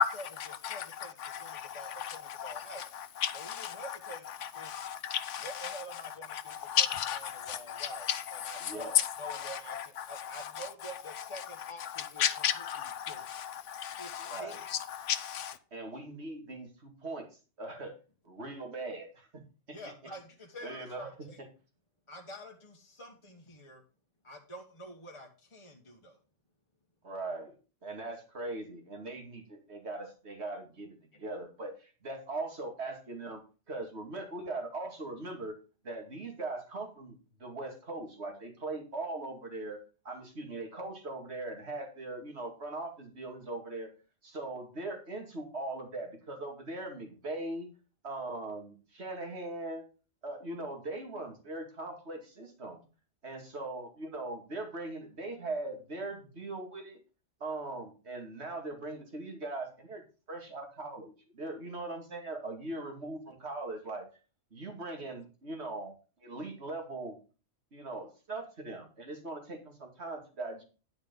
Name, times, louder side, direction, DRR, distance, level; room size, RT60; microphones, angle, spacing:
voice 1, 0.0-6.0 6.3-15.6, left 9 dB, 75° left, 1.1 m, -34 dB
voice 2, 0.5-2.8 3.3-4.3 4.5-4.7 5.4-6.8 7.1-12.2 13.0-13.3 14.0-14.6 19.7-21.4 22.1-23.8 24.2-26.2, right 1 dB, 25° left, 1.4 m, -47 dB
voice 3, 8.6-8.9 14.2-14.6 15.7-17.3 17.6-17.9 18.2-19.4 19.7-19.8 20.6-21.1 27.0-27.5 27.8-33.4 33.7-35.6 35.8-39.8 40.0-43.9 44.2-47.7 48.0-49.8 50.2-52.8 53.2-57.0 57.4-60.0 60.3-64.1 64.5-65.9 66.2-67.2 67.7-70.6, right 2 dB, 60° right, 2.5 m, -40 dB
10.5 x 5.8 x 5.3 m
omnidirectional pair, 1.3 m